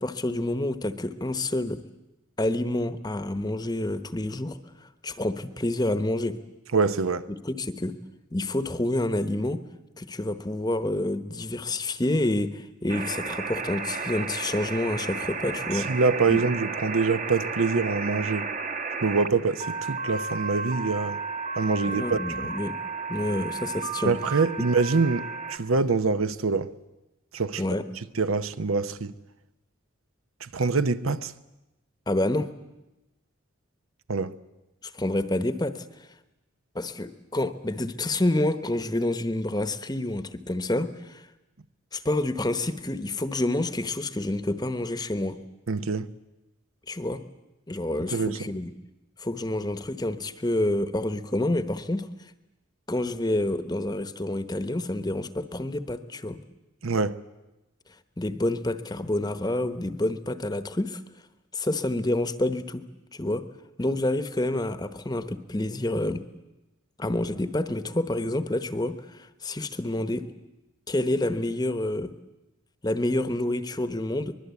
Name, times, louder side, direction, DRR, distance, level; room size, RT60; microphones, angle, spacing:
voice 1, 0.0-1.8 2.4-4.6 5.0-6.4 7.3-7.9 8.3-9.6 10.0-16.0 16.3-16.4 21.8-22.8 23.1-24.1 27.6-27.8 32.1-32.5 34.8-35.8 36.7-41.2 41.9-45.4 46.9-47.2 47.7-48.7 49.2-52.1 52.9-56.4 58.2-61.0 61.5-62.8 63.1-63.4 63.8-66.2 67.0-70.3 70.9-72.1 72.8-74.3, left 1 dB, 20° left, 1.0 m, -28 dB
voice 2, 6.7-7.3 15.7-18.5 19.0-21.2 21.6-22.2 24.0-26.7 27.3-27.6 28.2-29.2 30.4-31.3 34.1-34.3 45.7-46.1 48.1-48.4 56.8-57.2, right 4 dB, 80° right, 0.9 m, -25 dB
sound 1, 12.9-25.6, right 4 dB, 35° right, 1.1 m, -33 dB
23.5 x 21.5 x 8.3 m
head